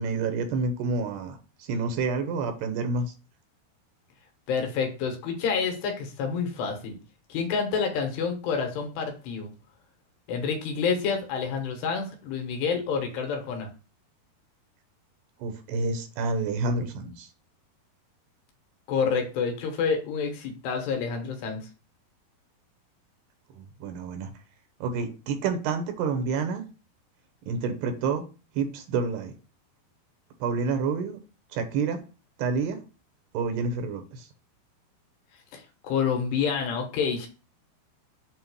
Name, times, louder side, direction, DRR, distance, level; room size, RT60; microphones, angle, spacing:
voice 1, 0.0-3.1 15.4-17.3 23.6-24.3 24.8-26.6 27.5-28.2 28.5-29.3 30.4-31.2 31.5-32.0 32.4-32.8 33.3-34.3, right 4 dB, 80° right, 7 dB, 3.0 m, -28 dB
voice 2, 4.5-7.0 7.3-9.5 10.3-13.7 18.9-21.6 35.5-37.3, left 6 dB, 80° left, 3 dB, 3.3 m, -28 dB
7.6 x 3.1 x 6.0 m, 0.34 s
omnidirectional pair, 4.7 m